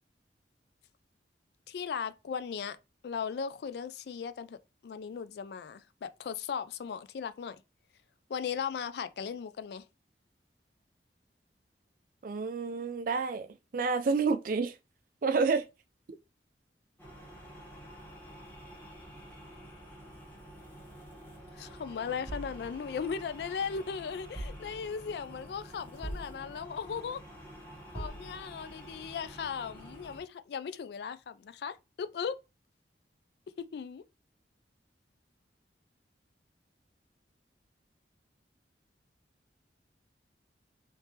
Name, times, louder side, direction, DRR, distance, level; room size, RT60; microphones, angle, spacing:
voice 1, 1.7-2.8 3.0-4.6 4.8-7.6 8.3-9.8 21.6-27.2 27.9-32.4 33.6-34.0, left 6 dB, 65° left, 0.3 m, -37 dB
voice 2, 12.2-13.5 13.7-14.8 15.2-15.7 16.1-16.2, right 4 dB, 50° right, 0.4 m, -29 dB
sound 1, 17.0-30.2, equal, 10° left, 1.0 m, -49 dB
sound 2, 22.3-23.7 24.4-25.2 26.0-26.9 28.0-28.8, right 1 dB, 15° right, 0.7 m, -44 dB
3.3 x 3.2 x 2.8 m
head